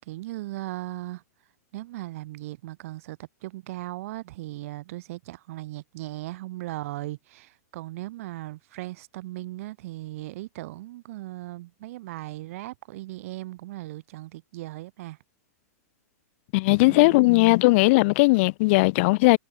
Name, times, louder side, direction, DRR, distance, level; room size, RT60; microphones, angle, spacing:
voice 1, 0.1-1.2 1.7-15.2 16.9-17.3, right 17 dB, 55° right, 1.9 m, -37 dB
voice 2, 16.5-19.4, left 24 dB, 50° left, 0.8 m, -18 dB
hypercardioid pair, 125°, 9 cm